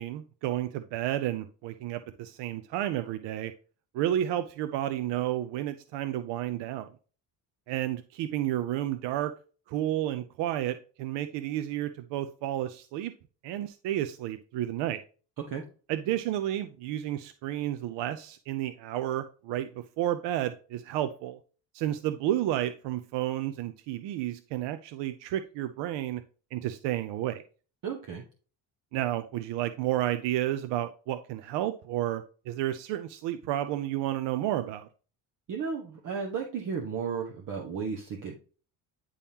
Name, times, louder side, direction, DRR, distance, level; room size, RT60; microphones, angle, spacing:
voice 1, 0.0-3.5 3.9-6.9 7.7-9.3 9.7-13.1 13.4-15.0 15.9-21.4 21.7-26.2 26.5-27.4 28.9-34.9, right 13 dB, 80° right, 10 dB, 0.6 m, -31 dB
voice 2, 27.8-28.2 35.5-38.3, right 6 dB, 45° right, 1 dB, 1.1 m, -34 dB
9.9 x 3.6 x 2.8 m, 0.37 s
cardioid pair, 150°, 42 cm